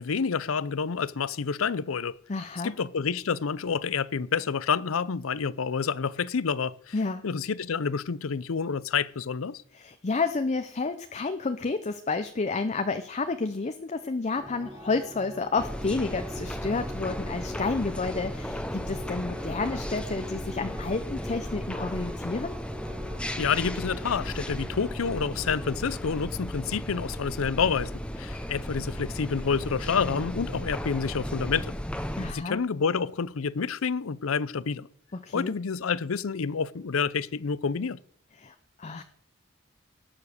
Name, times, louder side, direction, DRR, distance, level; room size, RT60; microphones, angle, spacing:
voice 1, 0.0-2.2 2.6-6.9 7.2-9.6 23.4-27.9 28.2-31.8 32.3-34.9 35.3-38.0, left 6 dB, 80° left, 0.6 m, -28 dB
voice 2, 2.3-2.7 6.9-7.2 9.7-22.5 32.2-32.6 35.1-35.5 38.4-39.0, left 3 dB, 35° left, 0.6 m, -30 dB
sound 1, 14.4-25.8, equal, 15° right, 1.1 m, -44 dB
sound 2, 15.6-32.3, equal, 5° left, 0.9 m, -35 dB
18.5 x 7.2 x 6.6 m
head